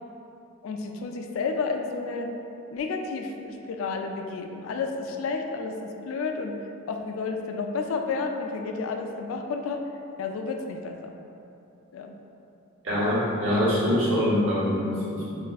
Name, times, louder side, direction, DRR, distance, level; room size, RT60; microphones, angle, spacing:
voice 1, 0.6-2.3 2.7-6.5 6.9-9.8 10.2-11.1 11.9-12.2, left 4 dB, 90° left, 4 dB, 0.3 m, -31 dB
voice 2, 12.8-15.5, left 1 dB, 70° right, -9 dB, 1.0 m, -24 dB
4.2 x 2.4 x 2.3 m, 2.7 s
head